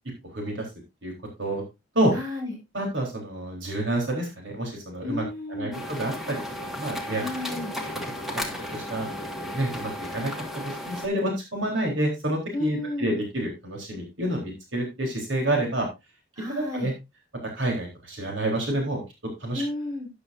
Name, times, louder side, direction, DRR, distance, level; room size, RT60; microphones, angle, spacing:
voice 1, 0.3-0.7 1.0-1.1 1.4-1.6 2.0-2.1 2.7-5.2 5.5-7.2 8.2-8.4 8.7-15.9 16.5-16.9 17.5-19.0 19.4-19.6, right 1 dB, 70° right, 1 dB, 3.9 m, -28 dB
voice 2, 2.1-2.5 5.0-5.8 7.0-7.7 12.5-13.2 16.4-16.9 19.5-20.1, left 1 dB, 20° right, -2 dB, 6.5 m, -32 dB
sound 1, 5.7-11.1, left 1 dB, ahead, 1.9 m, -34 dB
12.5 x 10.0 x 2.6 m, 0.24 s
head